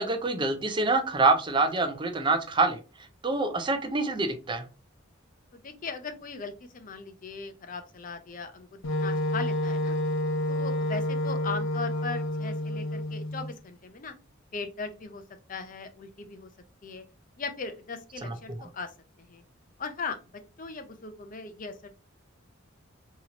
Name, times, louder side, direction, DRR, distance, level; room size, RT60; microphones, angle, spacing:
voice 1, 0.0-2.8 3.2-4.6 18.2-18.6, right 3 dB, 25° right, 8 dB, 0.5 m, -26 dB
voice 2, 5.5-10.0 10.5-14.1 14.5-15.2 15.5-16.5 16.8-17.0 17.4-18.9 19.2-19.4 19.8-20.2 20.6-21.9, left 4 dB, 40° left, 8 dB, 0.5 m, -38 dB
Wind instrument woodwind instrument, 8.8-13.5, left 1 dB, 90° left, 0.6 m, -29 dB
4.1 x 2.8 x 2.9 m, 0.33 s
head